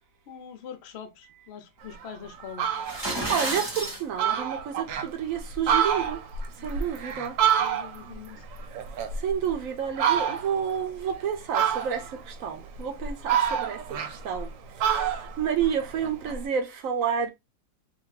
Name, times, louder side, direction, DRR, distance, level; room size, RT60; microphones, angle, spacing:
voice 1, 0.3-2.7 7.6-8.4, left 7 dB, 80° left, 0.5 m, -43 dB
Fowl, 1.9-2.1 2.4-3.0 3.5-3.6 3.9-4.0 4.2-5.1 5.5-8.1 8.5-9.5 10.0-10.6 11.5-12.2 12.8-14.5 14.8-16.4, right 8 dB, 85° right, 1.3 m, -27 dB
sound 1, 2.8-4.0, right 1 dB, 25° right, 0.6 m, -30 dB
voice 2, 3.3-6.2 6.6-7.3 9.2-14.5 15.0-15.1 15.4-17.3, right 8 dB, 70° right, 0.8 m, -29 dB
2.8 x 2.6 x 3.0 m
omnidirectional pair, 1.9 m